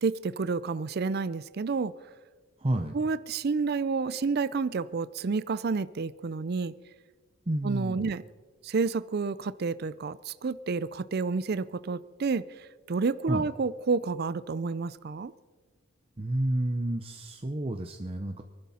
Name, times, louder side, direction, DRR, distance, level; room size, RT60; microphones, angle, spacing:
voice 1, 0.0-1.9 2.9-6.7 7.6-8.2 8.6-15.3, right 4 dB, 50° right, 15 dB, 0.4 m, -30 dB
voice 2, 2.6-3.0 7.5-8.1 13.3-13.4 16.2-18.4, right 1 dB, 25° right, 5 dB, 0.8 m, -30 dB
24.5 x 11.5 x 4.2 m, 1.3 s
head